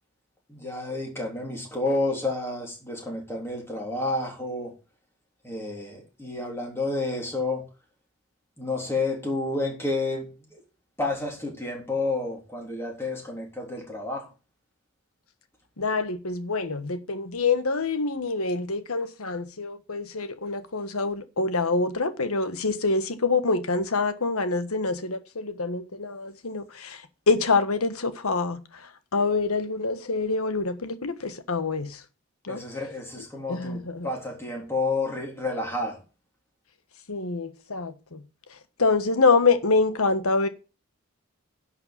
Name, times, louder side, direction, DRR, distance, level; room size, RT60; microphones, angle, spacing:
voice 1, 0.5-4.7 5.4-7.6 8.6-10.6 11.0-14.3 32.5-36.0, left 2 dB, 10° left, 3.6 m, -30 dB
voice 2, 15.8-32.0 32.4-32.6 33.5-34.1 37.1-38.2 38.5-40.5, left 3 dB, 85° left, 1.4 m, -26 dB
11.0 x 5.7 x 7.3 m
head